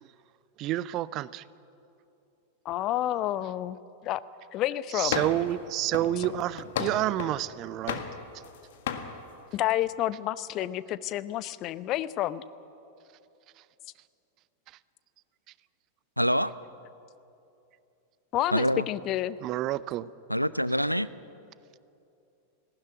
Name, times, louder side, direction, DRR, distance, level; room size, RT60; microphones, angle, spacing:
voice 1, 0.6-1.4 4.9-8.0 19.4-20.1, right 14 dB, 35° right, 20 dB, 0.5 m, -29 dB
voice 2, 2.6-3.8 4.0-4.2 4.5-5.2 9.5-12.4 18.3-19.4, left 13 dB, 35° left, 16 dB, 0.7 m, -29 dB
sound 1, 5.1-5.5 5.9-7.4 7.9-8.6 8.9-9.1, left 8 dB, 55° left, 1.6 m, -33 dB
voice 3, 16.2-16.5 18.5-18.9 20.3-21.1, equal, 90° left, 16 dB, 0.5 m, -25 dB
19.0 x 16.0 x 10.0 m, 2.7 s
figure-of-eight pair, 90°, 0 cm